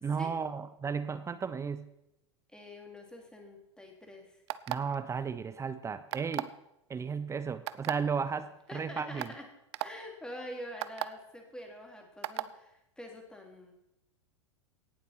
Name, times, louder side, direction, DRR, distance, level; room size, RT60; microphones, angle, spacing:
voice 1, 0.0-1.9 4.7-6.5 6.9-9.3, right 6 dB, 20° right, 13 dB, 0.7 m, -34 dB
voice 2, 2.5-4.4 8.7-9.5 9.8-13.7, left 1 dB, 5° left, 2 dB, 3.3 m, -46 dB
sound 1, 4.5-5.0 6.1-6.6 7.7-7.9 8.7-8.8 9.2-9.3 9.7-9.9 10.8-11.1 12.2-12.5, right 15 dB, 65° right, 0.7 m, -34 dB
17.5 x 7.5 x 5.9 m, 0.84 s
hypercardioid pair, 100°, 15 cm